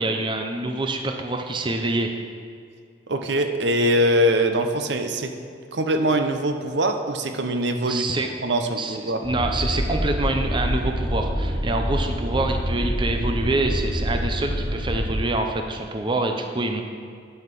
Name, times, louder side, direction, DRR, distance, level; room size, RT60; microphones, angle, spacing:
voice 1, 0.0-2.1 7.9-8.3 8.8-16.8, right 2 dB, 25° right, 4 dB, 0.6 m, -26 dB
voice 2, 3.1-5.3 5.7-9.2, right 1 dB, 75° right, 6 dB, 0.7 m, -23 dB
sound 1, 9.2-15.1, equal, 60° right, 2.7 m, -26 dB
11.0 x 5.7 x 5.9 m, 2.3 s
head